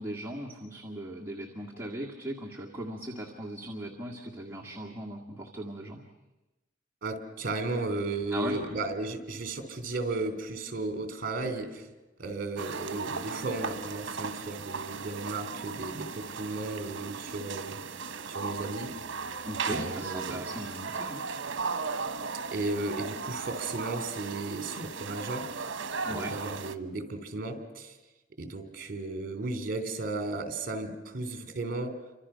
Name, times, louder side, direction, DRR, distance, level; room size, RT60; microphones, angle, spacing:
voice 1, 0.0-6.0 8.3-8.6 19.5-21.3 26.1-26.3, right 1 dB, 10° right, -3 dB, 1.9 m, -38 dB
voice 2, 7.0-11.9 12.2-17.8 18.3-18.9 19.7-20.4 22.5-25.7 26.1-27.9 28.4-31.9, right 2 dB, 45° right, 6 dB, 3.1 m, -35 dB
sound 1, 12.6-26.8, right 5 dB, 70° right, 1.0 m, -36 dB
29.0 x 25.5 x 5.7 m, 1.0 s
head